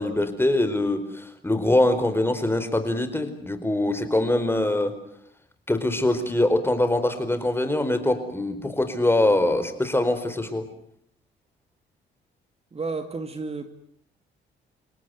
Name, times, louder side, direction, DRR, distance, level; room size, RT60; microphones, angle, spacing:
voice 1, 0.0-4.9 5.7-10.7, left 1 dB, 10° left, 9 dB, 4.6 m, -23 dB
voice 2, 12.7-13.7, right 4 dB, 30° right, 8 dB, 2.5 m, -31 dB
30.0 x 17.5 x 9.5 m, 0.70 s
cardioid pair, 90°, 20 cm